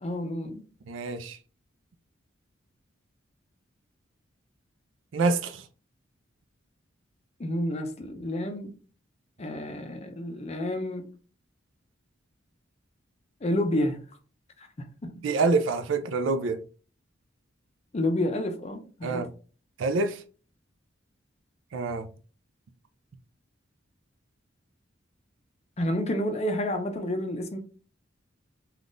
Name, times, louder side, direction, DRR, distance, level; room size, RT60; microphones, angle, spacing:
voice 1, 0.0-0.6 7.4-8.7 9.4-11.1 13.4-14.0 14.6-14.7 15.0-15.1 17.9-19.2 25.8-27.6, left 1 dB, 35° left, 0.5 m, -29 dB
voice 2, 0.9-1.4 5.1-5.6 15.2-16.6 19.0-19.3 19.8-20.2 21.7-22.1, right 3 dB, 75° right, 0.4 m, -26 dB
3.5 x 2.4 x 2.5 m
head